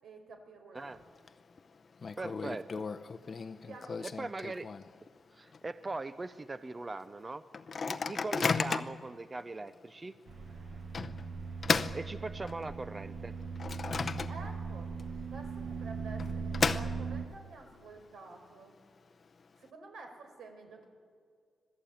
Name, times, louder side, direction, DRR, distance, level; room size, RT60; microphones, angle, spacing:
voice 1, 0.0-1.1 3.2-4.1 7.7-8.0 10.4-10.8 14.3-14.9 15.3-18.8 19.6-20.9, right 3 dB, 80° right, 4 dB, 5.0 m, -50 dB
Microwave oven, 0.8-1.3 1.6-1.7 2.0-5.1 5.5-5.6 5.9-6.2 6.7-6.8 7.5-9.1 9.7-9.8 10.9-12.8 13.2-14.7 15.0-15.1 16.0-17.4, left 5 dB, 30° left, 0.7 m, -34 dB
voice 2, 2.2-2.8 4.0-4.7 5.3-7.4 7.8-10.2 11.9-13.3, right 3 dB, 20° right, 12 dB, 0.5 m, -40 dB
sound 1, 10.3-17.3, right 5 dB, 40° right, 1.1 m, -39 dB
26.0 x 17.5 x 8.8 m, 2.2 s
wide cardioid pair, 180°, 0 cm